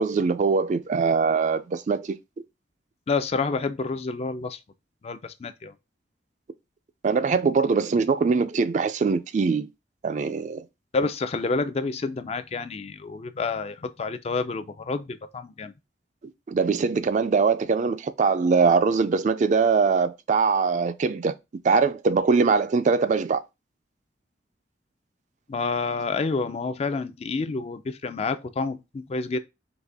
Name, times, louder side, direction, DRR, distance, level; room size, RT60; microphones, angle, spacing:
voice 1, 0.0-2.2 7.0-9.7 10.0-10.6 16.5-21.3 21.6-23.4, right 5 dB, 45° right, 0.3 m, -22 dB
voice 2, 3.1-4.6 5.0-5.7 10.9-15.7 25.5-29.4, left 4 dB, 35° left, 0.4 m, -29 dB
4.1 x 3.3 x 3.4 m
head